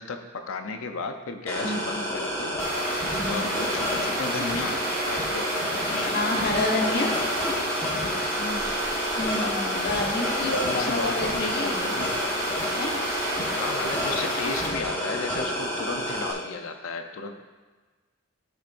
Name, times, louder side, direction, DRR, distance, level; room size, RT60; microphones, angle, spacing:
voice 1, 0.0-2.5 3.3-5.5 5.8-6.5 8.4-8.7 10.6-12.2 13.6-17.3, left 4 dB, 70° left, 6 dB, 0.5 m, -34 dB
sound 1, 1.5-16.3, equal, 10° left, 1.4 m, -29 dB
sound 2, 2.6-14.7, right 1 dB, 15° right, 2.0 m, -31 dB
voice 2, 6.1-7.1 9.2-11.8 12.8-12.9, left 2 dB, 50° left, 0 dB, 1.2 m, -28 dB
Keyboard (musical), 9.4-11.7, left 4 dB, 45° right, 1.7 m, -42 dB
12.5 x 5.7 x 2.6 m, 1.3 s
head